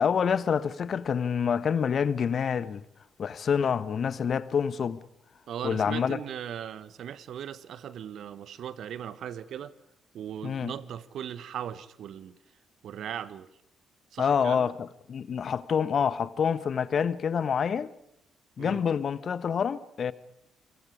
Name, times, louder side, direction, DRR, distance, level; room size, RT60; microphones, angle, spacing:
voice 1, 0.0-2.8 3.2-5.0 5.6-6.2 10.4-10.7 14.2-17.9 18.6-20.1, left 7 dB, 50° left, 1.2 m, -27 dB
voice 2, 5.5-9.7 10.1-12.4 12.8-13.5 14.1-14.7 18.6-18.8, right 9 dB, 60° right, 1.3 m, -38 dB
28.5 x 24.5 x 5.0 m
figure-of-eight pair, 45°, 0 cm